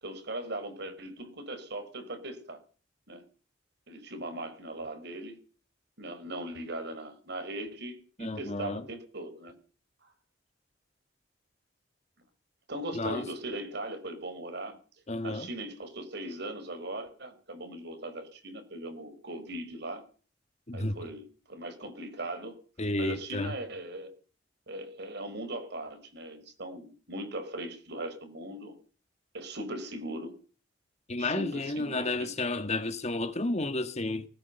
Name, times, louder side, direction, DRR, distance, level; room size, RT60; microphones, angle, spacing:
voice 1, 0.0-2.6 3.1-3.2 3.9-5.4 6.0-9.5 10.0-10.1 12.7-14.8 15.2-20.0 20.7-22.6 23.0-24.1 24.7-28.7 29.3-30.3 31.2-32.3, right 1 dB, 60° right, 5.2 m, -39 dB
voice 2, 8.2-8.8 12.9-13.2 15.1-15.5 20.7-20.9 22.8-23.5 31.1-34.2, left 2 dB, 35° left, 1.6 m, -31 dB
19.5 x 19.5 x 6.9 m
head